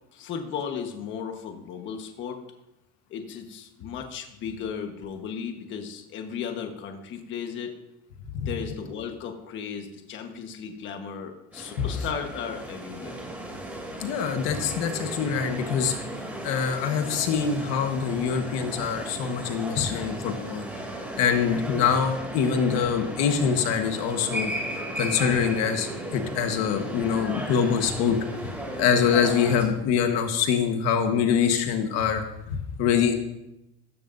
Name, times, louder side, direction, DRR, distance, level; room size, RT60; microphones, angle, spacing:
voice 1, 0.1-2.4 3.1-7.7 8.4-13.2, left 7 dB, 40° left, 4 dB, 1.3 m, -35 dB
sound 1, 11.5-29.6, right 1 dB, 5° right, 2.9 m, -36 dB
voice 2, 14.0-16.0 16.4-20.6 21.2-24.5 25.0-28.5 28.8-33.1, left 7 dB, 55° left, 5 dB, 1.4 m, -24 dB
16.0 x 14.5 x 2.7 m, 0.89 s
cardioid pair, 160°, 30 cm